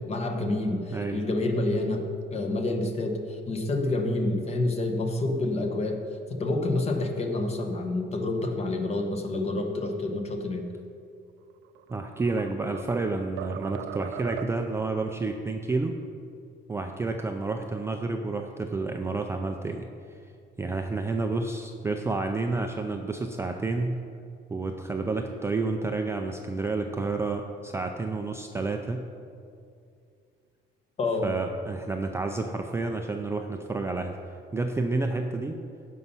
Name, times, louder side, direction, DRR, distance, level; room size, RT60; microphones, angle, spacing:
voice 1, 0.0-2.0 2.3-3.2 3.5-6.0 6.3-10.6 31.0-31.3, left 2 dB, 30° left, 4 dB, 1.1 m, -28 dB
voice 2, 0.9-1.2 11.9-16.0 16.7-20.2 20.6-24.0 24.5-29.0 31.2-34.2 34.5-35.6, right 3 dB, 15° right, 4 dB, 0.4 m, -30 dB
sound 1, 11.6-13.0 13.4-14.8, right 11 dB, 90° right, 0.4 m, -39 dB
15.5 x 5.6 x 5.5 m, 2.4 s
cardioid pair, 170°, 20 cm